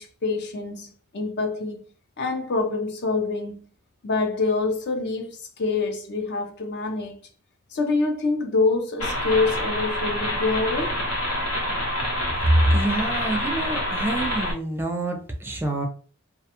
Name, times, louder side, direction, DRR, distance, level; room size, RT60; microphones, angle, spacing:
voice 1, 0.0-1.9 2.2-3.7 4.0-7.2 7.7-11.0, left 3 dB, 50° left, 0.5 m, -26 dB
sound 1, 9.0-14.5, left 1 dB, 80° left, 1.0 m, -27 dB
voice 2, 12.4-15.9, right 1 dB, 10° right, 0.4 m, -24 dB
2.3 x 2.2 x 2.8 m
head